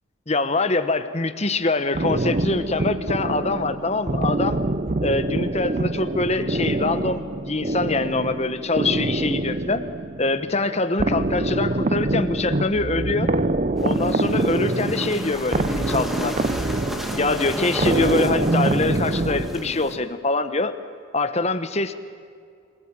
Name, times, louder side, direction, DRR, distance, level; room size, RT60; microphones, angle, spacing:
voice 1, 0.3-4.6 5.0-9.8 10.2-13.3 13.8-16.4 17.2-20.7 21.1-21.9, left 3 dB, 30° left, 10 dB, 1.2 m, -24 dB
sound 1, 1.9-20.1, right 2 dB, 35° right, 0.6 m, -25 dB
sound 2, 13.8-20.0, equal, ahead, 1.8 m, -33 dB
26.5 x 18.0 x 9.0 m, 2.3 s
head